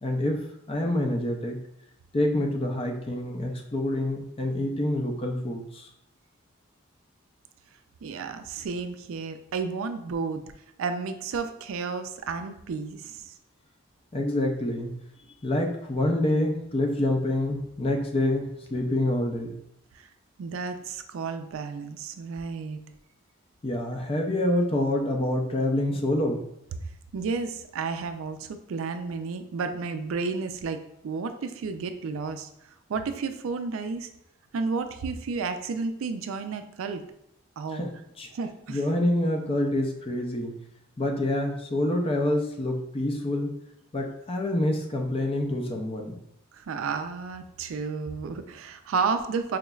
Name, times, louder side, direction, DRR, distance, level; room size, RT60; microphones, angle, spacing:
voice 1, 0.0-1.6 2.1-5.9 14.1-15.0 15.4-19.6 23.6-26.5 37.7-38.3 38.7-40.5 41.0-43.5 43.9-46.2, left 1 dB, 25° left, 3 dB, 0.4 m, -27 dB
voice 2, 8.0-10.4 10.8-13.3 20.0-20.1 20.4-22.8 27.1-30.8 31.0-32.5 32.9-34.1 34.5-37.0 37.6-37.9 38.3-38.8 46.6-49.6, right 4 dB, 80° right, 8 dB, 0.4 m, -32 dB
4.8 x 3.1 x 2.3 m, 0.77 s
head